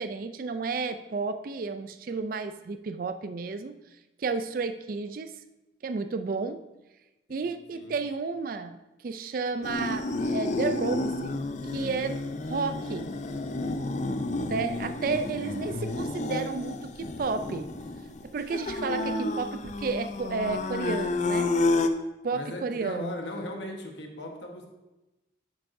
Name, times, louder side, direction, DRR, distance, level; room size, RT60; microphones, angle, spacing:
voice 1, 0.0-3.8 4.2-5.3 5.8-6.6 7.3-8.8 9.0-11.4 11.7-13.1 14.5-17.7 18.2-21.5 22.2-23.1, right 4 dB, 50° right, 9 dB, 0.4 m, -32 dB
voice 2, 7.3-7.9 22.3-24.7, left 1 dB, 70° left, 2 dB, 1.2 m, -38 dB
sound 1, 9.6-21.9, left 2 dB, 40° left, 0.4 m, -30 dB
10.5 x 7.9 x 2.6 m, 1.0 s
head